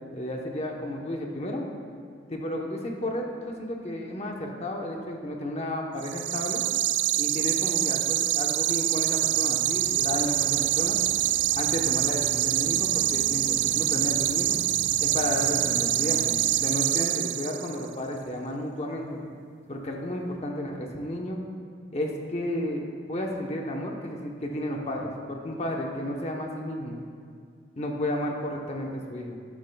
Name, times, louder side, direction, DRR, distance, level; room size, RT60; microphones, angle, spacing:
voice 1, 0.1-1.6 2.3-6.6 7.2-11.0 11.6-14.6 15.0-19.2 19.7-21.4 21.9-27.0 27.8-29.5, left 1 dB, 35° left, 1 dB, 1.0 m, -32 dB
sound 1, 6.0-17.8, right 13 dB, 85° right, 0.3 m, -25 dB
sound 2, 9.7-16.7, equal, 15° left, 1.0 m, -42 dB
11.5 x 10.0 x 2.3 m, 2.3 s
head